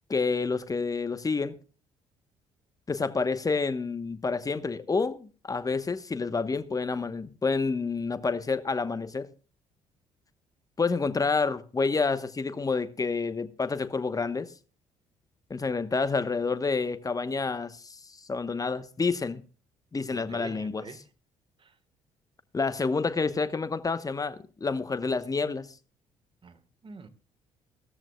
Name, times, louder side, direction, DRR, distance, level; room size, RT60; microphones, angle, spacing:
voice 1, 0.1-1.6 2.9-9.3 10.8-14.5 15.5-18.0 18.3-19.4 19.9-20.8 22.5-25.7, left 4 dB, 25° left, 1.0 m, -28 dB
voice 2, 20.1-21.0 21.6-21.7 26.4-27.1, right 4 dB, 35° right, 1.4 m, -46 dB
17.0 x 13.5 x 2.3 m
hypercardioid pair, 50°, 16 cm